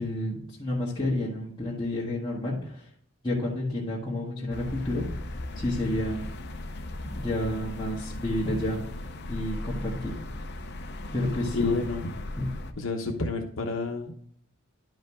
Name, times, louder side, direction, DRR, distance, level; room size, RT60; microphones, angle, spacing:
voice 1, 0.0-2.8 3.2-5.1 5.5-6.2 7.1-8.8 9.3-10.2 11.1-11.8 12.3-12.5, left 1 dB, 20° left, -8 dB, 1.7 m, -30 dB
sound 1, 4.5-12.7, left 1 dB, 50° left, 0.7 m, -37 dB
voice 2, 11.5-12.1 12.8-14.1, left 3 dB, 70° left, 2 dB, 1.0 m, -29 dB
11.0 x 5.2 x 3.7 m, 0.64 s
head